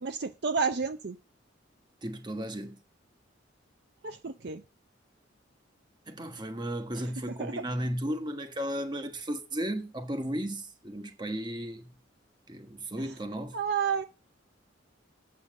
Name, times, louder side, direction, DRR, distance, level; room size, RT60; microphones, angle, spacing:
voice 1, 0.0-1.2 4.0-4.6 7.4-7.6 13.5-14.0, right 5 dB, 60° right, 0.6 m, -30 dB
voice 2, 2.0-2.8 6.1-11.9 12.5-13.6, equal, 25° right, 1.2 m, -35 dB
7.9 x 5.7 x 7.5 m
head